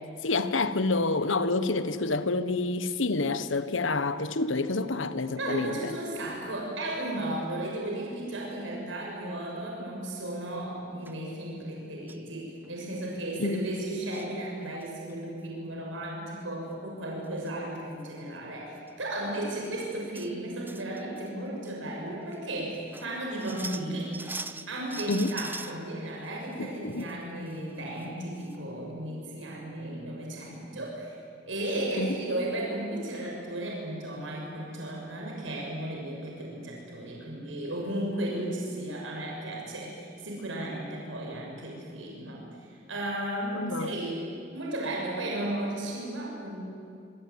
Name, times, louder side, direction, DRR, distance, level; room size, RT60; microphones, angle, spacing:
voice 1, 0.2-5.9 13.4-13.7 25.1-25.4 26.6-27.1 32.0-32.2 43.5-43.9, left 3 dB, 80° left, 12 dB, 1.4 m, -28 dB
voice 2, 5.3-24.1 24.7-31.2 31.5-46.7, right 1 dB, 80° right, -2 dB, 6.6 m, -35 dB
sound 1, 10.0-10.4 11.0-11.2 12.1-12.3 12.6-12.7 12.9-13.2 13.8-14.3 14.7-15.1 16.9-17.0 17.3-17.5 17.9-18.0 18.8-18.9 19.3-19.4 19.8-20.3 20.7-21.3 21.6-21.7 22.3-22.4 22.7-25.8 26.2-27.1 27.5-27.6 28.0-28.1 28.4-28.5, right 3 dB, 10° right, 1.0 m, -42 dB
26.5 x 24.0 x 9.5 m, 2.5 s
head